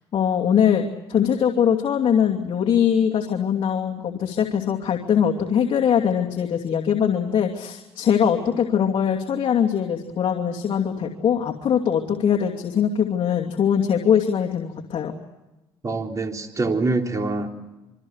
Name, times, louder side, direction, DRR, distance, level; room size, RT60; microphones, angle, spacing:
voice 1, 0.1-15.1, left 8 dB, 50° left, 1 dB, 2.7 m, -22 dB
voice 2, 15.8-17.5, right 3 dB, 30° right, 3 dB, 3.8 m, -25 dB
28.0 x 24.0 x 6.5 m, 1.1 s
cardioid pair, 105°, 11 cm